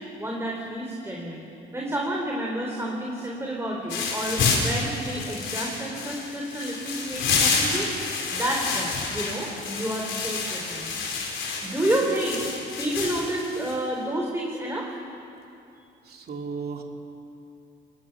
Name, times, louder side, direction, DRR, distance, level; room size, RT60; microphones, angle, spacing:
voice 1, 0.0-1.4 1.7-7.9 8.3-10.9 11.4-12.5 12.8-14.9, right 1 dB, 15° right, -2 dB, 3.7 m, -30 dB
sound 1, 3.9-13.8, left 4 dB, 75° left, 4.3 m, -29 dB
voice 2, 16.1-16.8, right 5 dB, 50° right, 2 dB, 2.7 m, -34 dB
25.0 x 20.0 x 6.0 m, 2.7 s
cardioid pair, 90°, 20 cm